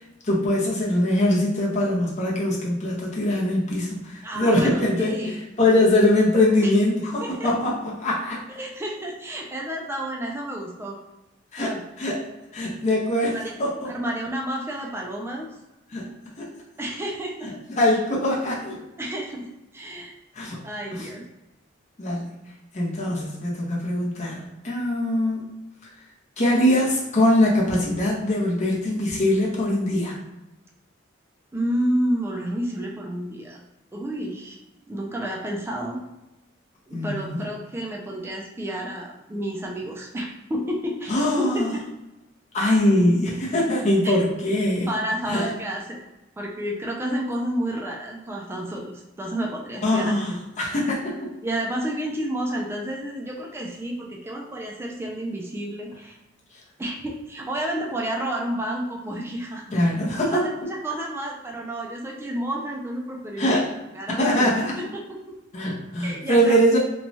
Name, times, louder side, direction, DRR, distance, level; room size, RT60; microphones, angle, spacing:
voice 1, 0.3-8.4 11.5-12.2 12.5-13.9 15.9-16.1 16.4-16.5 17.4-18.8 20.3-20.6 20.9-21.1 22.0-22.3 22.7-25.5 26.4-30.2 36.9-37.4 41.1-41.7 42.5-44.9 45.3-45.5 49.8-51.1 59.7-60.7 63.4-63.7 64.2-64.7 65.5-66.8, left 1 dB, 35° left, -4 dB, 0.6 m, -22 dB
voice 2, 4.2-5.4 6.6-6.7 7.2-7.5 8.6-11.0 11.6-11.8 13.2-13.5 13.9-15.5 16.8-17.5 19.0-19.5 19.7-20.1 20.6-21.2 31.5-33.6 33.9-34.6 34.9-36.0 36.9-41.8 44.0-44.1 44.9-46.0 46.4-50.4 51.4-56.2 56.8-59.7 60.3-63.7 63.9-65.4 66.0-66.6, right 1 dB, 10° right, -1 dB, 0.3 m, -30 dB
3.0 x 2.2 x 2.6 m, 0.96 s
head